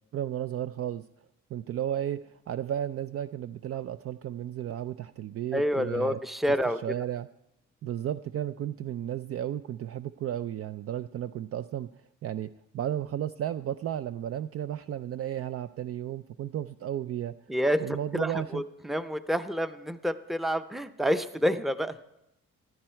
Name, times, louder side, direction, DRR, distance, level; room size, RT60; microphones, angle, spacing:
voice 1, 0.1-1.1 1.5-6.2 6.8-7.3 7.8-12.5 12.7-17.4 17.8-18.6, right 11 dB, 50° right, 12 dB, 0.5 m, -33 dB
voice 2, 5.5-6.8 17.5-17.8 18.1-21.9, equal, ahead, 11 dB, 0.6 m, -28 dB
15.0 x 12.0 x 4.4 m, 0.87 s
cardioid pair, 90°, 30 cm